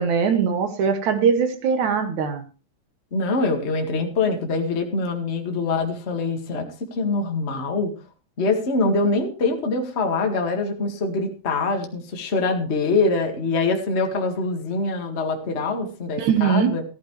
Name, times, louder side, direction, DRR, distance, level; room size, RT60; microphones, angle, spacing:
voice 1, 0.0-2.4 16.2-16.7, right 6 dB, 65° right, 9 dB, 2.0 m, -21 dB
voice 2, 3.1-6.6 6.9-7.9 8.4-16.8, left 3 dB, 80° left, 3 dB, 0.6 m, -24 dB
15.0 x 13.5 x 3.2 m, 0.33 s
omnidirectional pair, 4.7 m